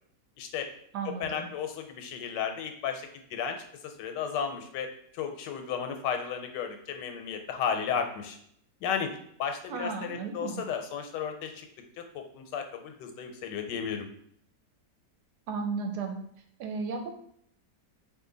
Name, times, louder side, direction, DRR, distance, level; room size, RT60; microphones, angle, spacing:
voice 1, 0.4-0.7 1.0-8.4 8.8-11.7 12.0-14.1, left 7 dB, 90° left, 5 dB, 1.2 m, -34 dB
voice 2, 0.9-1.5 9.7-10.6 15.5-16.2 16.6-17.1, right 4 dB, 80° right, 4 dB, 1.1 m, -34 dB
2.7 x 2.6 x 3.8 m, 0.68 s
omnidirectional pair, 1.8 m